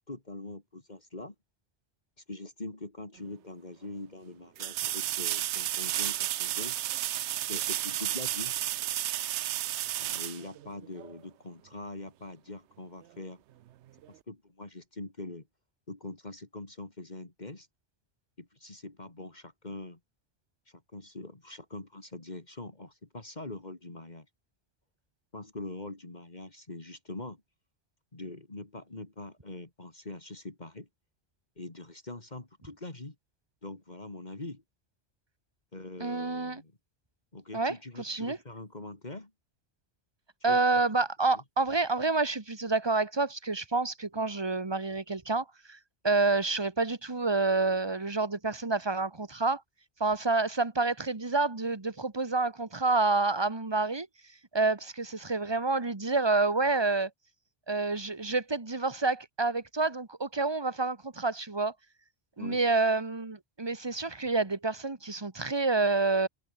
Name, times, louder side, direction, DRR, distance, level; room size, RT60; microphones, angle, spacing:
voice 1, 0.1-1.3 2.3-6.8 7.5-8.5 9.9-13.4 14.1-15.5 15.9-17.7 18.4-20.0 20.7-24.3 25.3-27.4 28.1-30.9 31.6-33.2 33.6-34.6 35.7-36.7 37.3-39.3 40.4-40.6 41.3-41.4 62.4-62.6, left 2 dB, 40° left, 2.8 m, -43 dB
sound 1, 3.2-3.3 4.6-11.2 14.0-14.1, right 13 dB, 90° right, 0.9 m, -32 dB
voice 2, 36.0-36.6 37.5-38.4 40.4-45.8 46.0-49.6 50.0-54.1 54.5-57.1 57.7-61.7 62.4-66.3, right 3 dB, 25° right, 1.6 m, -28 dB
omnidirectional pair, 1.1 m